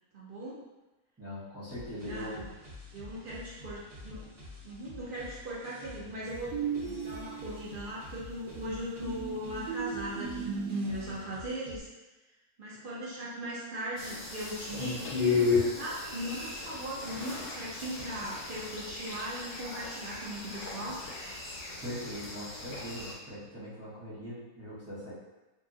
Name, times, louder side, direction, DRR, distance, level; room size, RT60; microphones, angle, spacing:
voice 1, 0.1-0.6 2.1-2.5 2.9-4.3 4.6-6.5 7.0-11.9 12.6-21.0, right 1 dB, 70° right, -7 dB, 0.5 m, -38 dB
voice 2, 1.2-2.5 21.8-25.1, equal, 10° right, -12 dB, 0.8 m, -41 dB
sound 1, 1.7-11.8, left 2 dB, 45° right, 1.0 m, -48 dB
sound 2, 6.5-7.8 9.0-11.2, right 6 dB, 90° right, 1.1 m, -36 dB
sound 3, 14.0-23.1, left 5 dB, 85° left, 1.2 m, -34 dB
2.9 x 2.6 x 2.4 m, 1.1 s
omnidirectional pair, 1.6 m